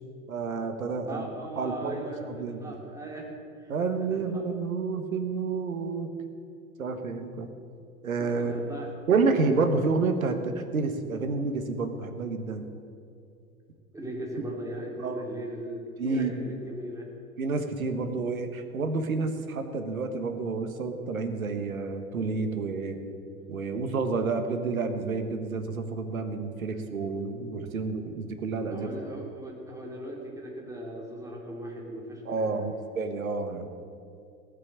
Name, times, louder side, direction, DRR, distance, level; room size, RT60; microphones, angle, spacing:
voice 1, 0.3-1.3 1.6-2.6 3.7-6.1 6.8-7.5 8.0-8.5 9.1-12.7 15.0-15.2 16.0-16.5 17.4-23.0 23.5-28.9 32.2-33.7, right 4 dB, 75° right, 7 dB, 1.4 m, -29 dB
voice 2, 1.1-3.3 3.6-3.7 4.1-4.4 8.2-8.9 13.9-17.1 26.7-26.8 27.2-27.3 28.7-32.8, right 1 dB, 5° right, -2 dB, 3.2 m, -38 dB
17.5 x 7.7 x 7.4 m, 2.5 s
figure-of-eight pair, 85°, 43 cm